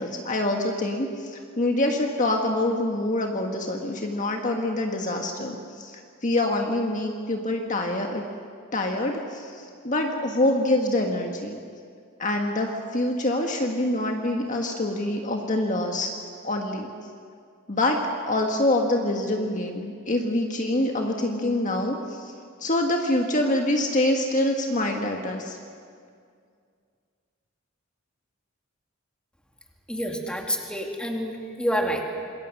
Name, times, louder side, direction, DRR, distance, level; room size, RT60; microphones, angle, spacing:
voice 1, 0.0-8.2 8.7-11.6 12.2-16.1 16.4-16.9 17.7-22.3 22.6-25.6, left 1 dB, 40° left, 2 dB, 1.6 m, -25 dB
voice 2, 29.9-32.0, equal, 5° left, 1 dB, 2.5 m, -28 dB
27.0 x 22.0 x 6.6 m, 2.2 s
head